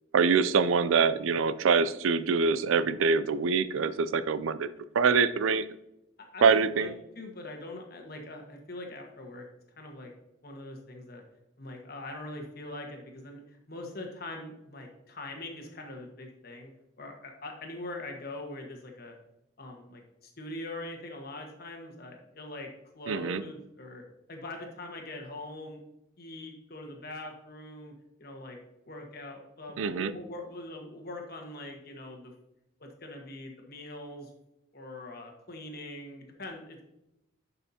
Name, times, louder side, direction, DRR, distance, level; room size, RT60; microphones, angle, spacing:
voice 1, 0.1-4.7 4.9-5.6 6.4-6.9 23.1-23.4 29.8-30.1, right 5 dB, 75° right, 14 dB, 0.4 m, -24 dB
voice 2, 6.2-9.4 9.8-10.1 10.4-11.2 11.6-16.7 17.0-19.1 19.6-22.7 22.9-24.0 24.3-25.8 26.2-27.9 28.2-28.6 28.9-32.3 32.8-34.3 34.7-36.8, left 2 dB, 50° left, 2 dB, 1.4 m, -42 dB
11.0 x 5.7 x 2.8 m, 0.87 s
head